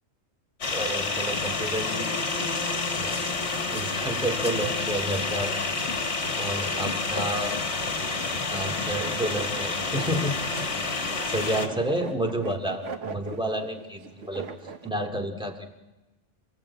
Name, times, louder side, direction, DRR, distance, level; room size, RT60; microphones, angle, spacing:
sound 1, 0.6-11.7, left 3 dB, 65° left, 2.2 m, -29 dB
voice 1, 0.7-2.1 2.9-3.2 3.7-5.6 6.4-7.6 8.5-10.4 10.9-14.5 14.8-15.7, right 1 dB, 5° right, 2 dB, 2.2 m, -30 dB
sound 2, 8.0-14.9, right 5 dB, 75° right, 1.5 m, -42 dB
28.0 x 16.0 x 8.4 m, 1.1 s
omnidirectional pair, 1.2 m